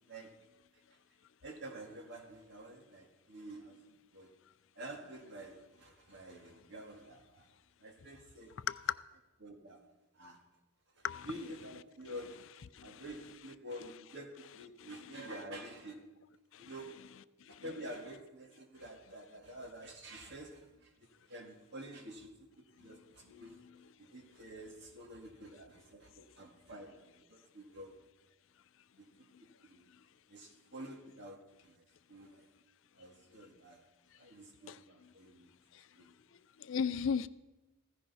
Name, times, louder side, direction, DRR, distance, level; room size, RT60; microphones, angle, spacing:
voice 1, 1.4-4.3 4.8-7.5 7.8-8.5 9.4-9.8 10.1-10.4 11.0-16.1 16.6-17.0 17.5-20.9 21.3-23.6 24.0-28.0 29.0-29.1 29.4-29.9 30.3-31.8 32.1-32.5 33.0-33.8 34.1-35.5 36.0-36.1, right 1 dB, 50° right, 3 dB, 1.9 m, -49 dB
voice 2, 8.7-9.0 11.0-11.3 12.0-12.1 12.7-13.0 14.8-14.9 16.5-16.7 17.5-17.6 22.9-23.0 34.7-34.8 36.6-37.3, left 7 dB, 55° left, 15 dB, 0.4 m, -36 dB
15.5 x 15.0 x 4.2 m, 1.1 s
head